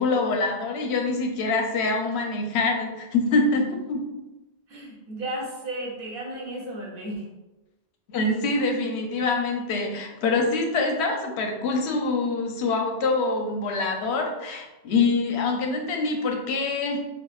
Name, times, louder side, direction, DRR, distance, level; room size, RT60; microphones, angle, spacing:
voice 1, 0.0-4.1 8.1-17.0, left 3 dB, 85° left, 2 dB, 0.9 m, -25 dB
voice 2, 4.7-7.2, right 1 dB, 60° right, -1 dB, 0.9 m, -34 dB
4.6 x 2.0 x 2.3 m, 1.0 s
omnidirectional pair, 1.1 m